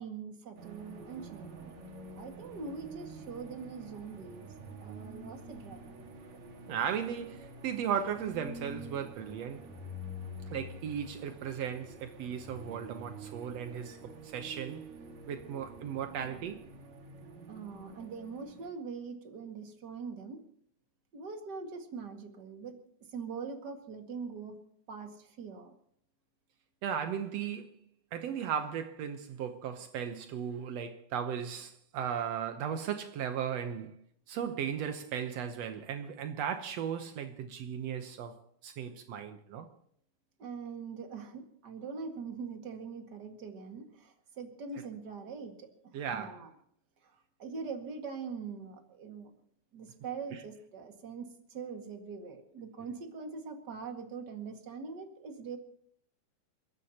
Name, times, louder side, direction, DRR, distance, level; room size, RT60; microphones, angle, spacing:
voice 1, 0.0-1.7 2.2-4.5 4.8-5.9 17.5-20.4 21.1-22.8 23.1-24.6 24.9-25.7 40.4-45.7 46.1-46.5 47.0-47.1 47.4-49.3 49.7-55.6, right 5 dB, 35° right, 1.8 m, -42 dB
sound 1, 0.6-18.7, right 1 dB, 55° right, 2.8 m, -48 dB
voice 2, 6.7-9.7 10.5-14.9 15.3-16.6 26.8-27.8 28.1-33.9 34.3-38.4 38.6-39.7 45.9-46.4 50.3-50.4, right 8 dB, 90° right, 1.4 m, -36 dB
28.0 x 14.5 x 2.9 m
omnidirectional pair, 4.3 m